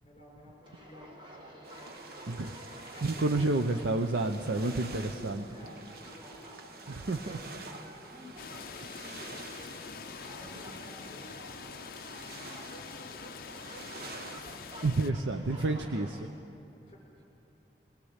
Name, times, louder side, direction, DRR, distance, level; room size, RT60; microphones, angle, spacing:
voice 1, 0.0-2.5 3.0-6.7 7.1-13.2 16.9-17.2, left 1 dB, 30° left, -2 dB, 6.8 m, -53 dB
sound 1, 0.6-16.3, right 1 dB, 30° right, 2.2 m, -51 dB
sound 2, 1.6-14.9, right 3 dB, 55° right, 1.2 m, -49 dB
voice 2, 3.0-5.4 6.9-7.4 14.8-16.3, right 2 dB, 85° right, 5 dB, 0.8 m, -30 dB
sound 3, 8.4-15.1, left 6 dB, 55° left, 0.6 m, -45 dB
22.0 x 19.5 x 8.2 m, 2.9 s
head